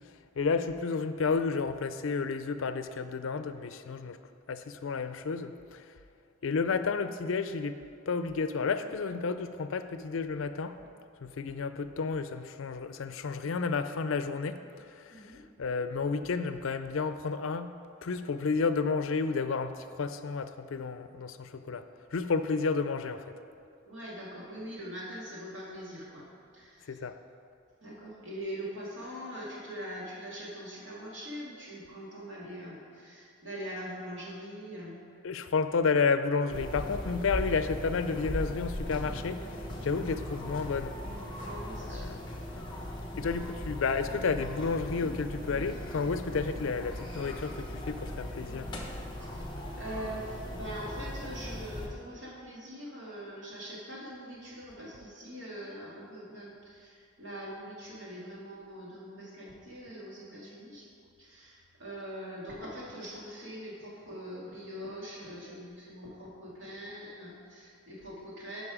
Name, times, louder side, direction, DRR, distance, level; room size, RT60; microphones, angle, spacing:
voice 1, 0.4-4.2 4.5-5.8 6.4-7.8 8.1-10.7 11.2-14.6 15.0-15.3 15.6-17.7 18.0-19.7 20.0-21.8 22.1-23.2 26.9-27.1 35.2-40.9 41.9-42.2 43.2-48.7, left 4 dB, 80° left, 10 dB, 0.5 m, -31 dB
voice 2, 15.1-15.4 23.8-26.3 26.5-27.0 27.8-34.9 41.4-42.1 49.2-49.4 49.8-60.9 61.2-68.6, equal, 65° right, -5 dB, 2.4 m, -42 dB
sound 1, 36.5-51.9, left 1 dB, 25° left, 1.0 m, -39 dB
11.0 x 5.2 x 4.9 m, 2.4 s
head